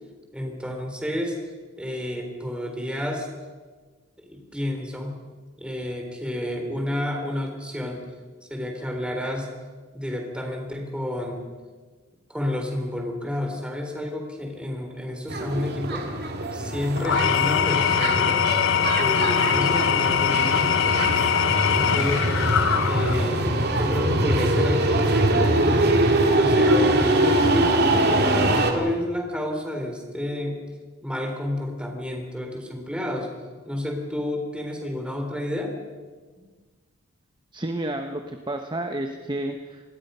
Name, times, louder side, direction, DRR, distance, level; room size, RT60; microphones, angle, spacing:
voice 1, 0.3-1.4 1.8-3.3 4.3-5.2 5.6-8.0 8.5-9.5 9.9-11.4 12.3-16.1 16.5-18.4 18.9-21.1 21.7-22.3 22.6-23.5 23.8-25.6 26.3-30.6 31.0-33.3 33.7-35.7, left 1 dB, 5° right, 3 dB, 3.7 m, -30 dB
sound 1, 15.3-28.7, right 1 dB, 50° right, 2.6 m, -23 dB
Engine / Tools, 17.0-23.4, left 8 dB, 60° left, 0.7 m, -22 dB
voice 2, 37.5-39.8, right 1 dB, 20° right, 5 dB, 1.1 m, -30 dB
26.0 x 20.0 x 5.6 m, 1.4 s
head